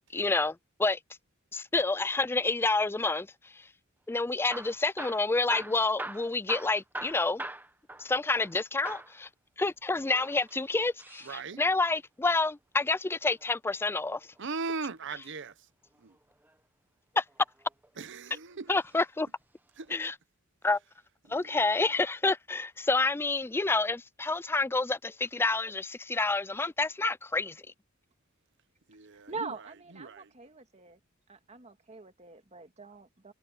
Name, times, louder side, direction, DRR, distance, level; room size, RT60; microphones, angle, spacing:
voice 1, 0.1-1.0 1.5-3.3 3.5-3.6 4.1-7.4 8.0-9.3 9.6-14.2 17.2-17.3 18.7-19.3 19.9-20.1 20.6-20.8 21.3-27.6, left 3 dB, 10° left, 0.3 m, -28 dB
Hammer / Drill, 4.3-8.6 8.8-9.2 10.0-11.4 13.2-14.4 16.1-16.6 17.3-18.1 18.8-19.0 19.3-19.4 20.1-20.2, right 2 dB, 10° right, 1.1 m, -42 dB
voice 2, 11.3-11.6 14.4-15.6 16.0-16.2 18.0-18.8 19.8-20.0 21.3-21.7 28.9-29.5 29.9-30.3, right 4 dB, 60° right, 0.9 m, -39 dB
voice 3, 29.1-31.0 31.3-33.3, right 4 dB, 30° right, 2.0 m, -43 dB
head